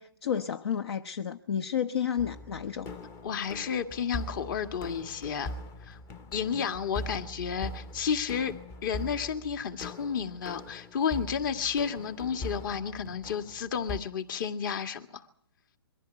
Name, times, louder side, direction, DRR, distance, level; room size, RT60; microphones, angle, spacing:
voice 1, 0.0-2.9, left 8 dB, 65° left, 1.1 m, -31 dB
sound 1, 2.2-14.0, left 1 dB, 20° left, 0.9 m, -42 dB
voice 2, 3.2-5.5 5.8-6.0 6.3-8.5 8.8-15.3, left 7 dB, 45° left, 2.1 m, -32 dB
23.5 x 15.0 x 9.2 m
hypercardioid pair, 155°, 14 cm